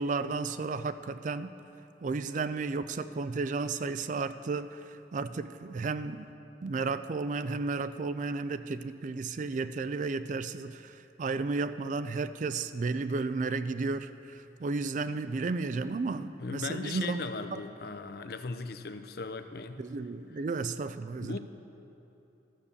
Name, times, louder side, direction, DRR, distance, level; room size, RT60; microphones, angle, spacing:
voice 1, 0.0-1.5 2.0-6.3 6.6-17.6 19.8-21.4, right 4 dB, 45° right, 12 dB, 0.3 m, -33 dB
voice 2, 16.4-19.8 21.2-21.4, left 3 dB, 55° left, 10 dB, 0.5 m, -38 dB
13.0 x 6.7 x 7.1 m, 3.0 s
head